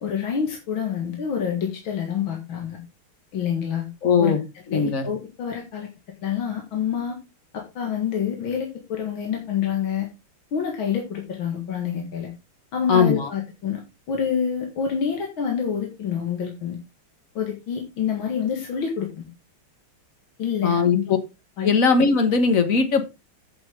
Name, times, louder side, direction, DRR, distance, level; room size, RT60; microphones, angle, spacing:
voice 1, 0.0-2.8 3.3-3.9 4.2-4.3 4.7-5.9 6.2-7.2 7.5-10.1 10.5-12.3 12.7-16.8 17.3-19.3 20.4-21.1 21.6-21.7, left 7 dB, 65° left, 1 dB, 2.5 m, -27 dB
voice 2, 4.0-4.4 4.7-5.1 12.9-13.3 20.6-21.0 21.6-23.0, left 5 dB, 40° left, 8 dB, 1.7 m, -19 dB
8.6 x 7.7 x 3.7 m, 0.26 s
omnidirectional pair, 2.4 m